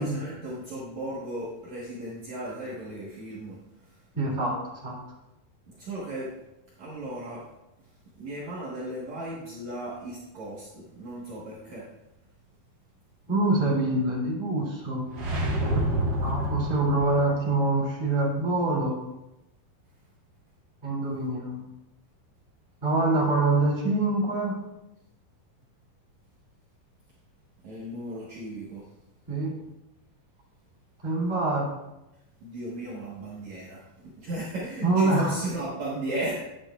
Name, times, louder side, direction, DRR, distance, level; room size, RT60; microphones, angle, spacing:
voice 1, 0.0-3.6 3.9-4.0 5.7-6.3 6.8-7.4 8.2-11.9 27.6-28.8 32.4-36.4, right 1 dB, 55° right, -7 dB, 2.4 m, -36 dB
voice 2, 4.1-4.5 4.8-5.0 13.3-15.1 16.2-18.9 20.8-21.6 22.8-24.5 29.3-29.5 31.0-31.7 34.8-35.4, right 2 dB, 15° right, -6 dB, 2.5 m, -25 dB
sound 1, 15.1-17.3, right 1 dB, 80° right, 0.9 m, -28 dB
10.5 x 9.1 x 2.4 m, 0.93 s
omnidirectional pair, 4.5 m